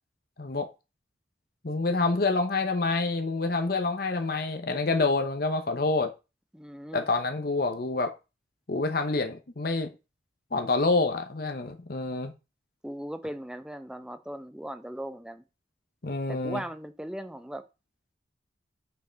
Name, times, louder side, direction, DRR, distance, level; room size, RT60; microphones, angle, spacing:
voice 1, 1.6-6.1 6.9-8.1 8.7-9.9 10.5-12.3 16.0-16.6, left 3 dB, 55° left, 0.9 m, -27 dB
voice 2, 6.5-7.1 12.8-15.4 16.3-17.6, right 1 dB, 5° right, 0.7 m, -38 dB
6.9 x 5.8 x 5.1 m
head